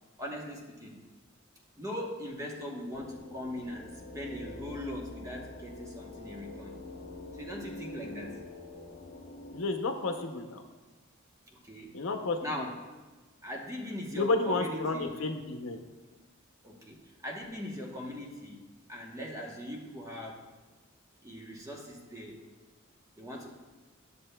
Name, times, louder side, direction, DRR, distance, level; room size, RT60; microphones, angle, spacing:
voice 1, 0.2-1.0 1.8-6.8 7.3-8.4 11.6-11.9 12.4-12.8 13.4-15.2 16.6-20.4 21.2-22.4 23.2-23.5, equal, 15° right, -1 dB, 0.9 m, -40 dB
sound 1, 2.9-9.6, left 2 dB, 55° left, 1.0 m, -45 dB
voice 2, 9.5-10.6 11.9-12.4 14.2-15.8, left 3 dB, 85° left, 5 dB, 0.6 m, -31 dB
11.5 x 6.8 x 2.2 m, 1.2 s
head